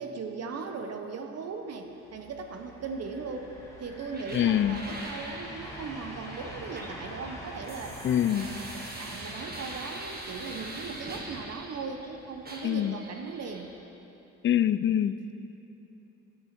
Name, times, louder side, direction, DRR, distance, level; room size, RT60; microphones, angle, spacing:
voice 1, 0.0-13.7, right 4 dB, 55° right, 5 dB, 0.9 m, -38 dB
sound 1, 1.8-13.8, equal, 10° left, 1.9 m, -46 dB
sound 2, 4.1-12.1 12.4-13.7, right 1 dB, 30° right, 1.6 m, -43 dB
voice 2, 4.3-4.8 8.0-8.5 12.6-13.0 14.4-15.3, left 10 dB, 40° left, 13 dB, 0.4 m, -25 dB
11.0 x 8.6 x 4.4 m, 2.9 s
cardioid pair, 90°, 30 cm